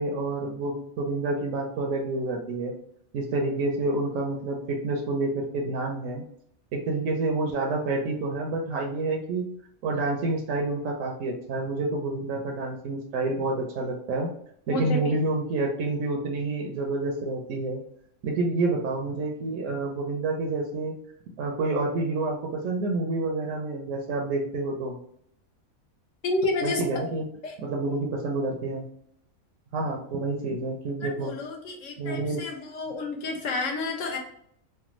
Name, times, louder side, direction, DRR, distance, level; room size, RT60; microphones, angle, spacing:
voice 1, 0.0-2.7 3.1-6.2 6.7-9.5 9.8-14.3 14.7-17.8 18.2-20.9 21.4-25.0 26.6-27.2 27.6-28.8 29.7-31.3 32.0-32.4, right 2 dB, 70° right, 1 dB, 0.9 m, -28 dB
voice 2, 14.7-15.1 26.2-26.8 27.4-27.5 31.0-34.2, left 2 dB, 70° left, 0 dB, 1.0 m, -30 dB
3.3 x 2.2 x 3.0 m, 0.69 s
omnidirectional pair, 1.5 m